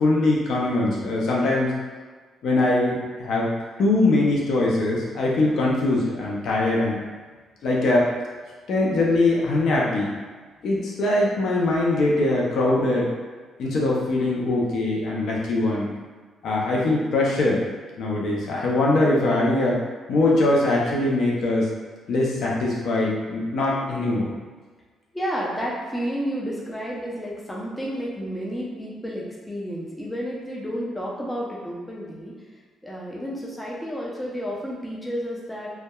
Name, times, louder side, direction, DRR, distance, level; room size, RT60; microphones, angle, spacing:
voice 1, 0.0-1.7 2.4-7.0 7.6-8.1 8.7-10.1 10.6-13.1 13.6-15.9 16.4-17.6 18.0-19.8 20.1-21.7 22.1-24.3, left 2 dB, 70° left, -4 dB, 0.5 m, -22 dB
voice 2, 25.1-32.3 32.8-35.7, equal, 10° left, -5 dB, 0.5 m, -31 dB
2.7 x 2.2 x 2.2 m, 1.4 s
cardioid pair, 90°, 0 cm